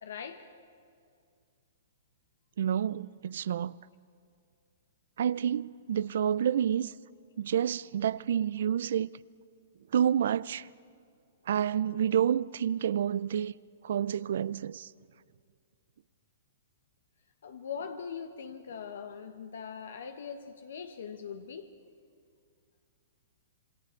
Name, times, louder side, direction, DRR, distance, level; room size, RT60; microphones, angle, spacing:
voice 1, 0.0-0.5 17.4-21.7, left 6 dB, 80° left, 1.3 m, -41 dB
voice 2, 2.6-3.7 5.2-6.9 7.4-9.1 9.9-10.7 11.5-13.5 13.8-14.9, right 9 dB, 70° right, 0.4 m, -29 dB
27.5 x 22.0 x 4.5 m
hypercardioid pair, 155°, 0 cm